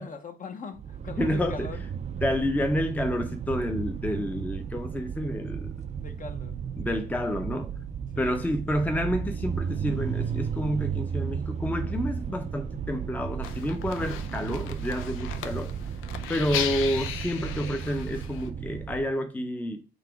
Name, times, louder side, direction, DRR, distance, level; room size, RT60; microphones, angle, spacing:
voice 1, 0.0-1.8 6.0-6.6 8.1-8.5, left 5 dB, 40° left, 0.8 m, -41 dB
sound 1, 0.8-19.1, right 7 dB, 35° right, 0.4 m, -34 dB
voice 2, 1.2-1.7 2.2-5.8 6.8-7.7 8.2-15.7 16.3-19.8, equal, 10° left, 0.6 m, -29 dB
sound 2, 13.4-18.5, left 9 dB, 90° left, 0.5 m, -36 dB
4.0 x 2.9 x 4.5 m
cardioid pair, 90°, 20 cm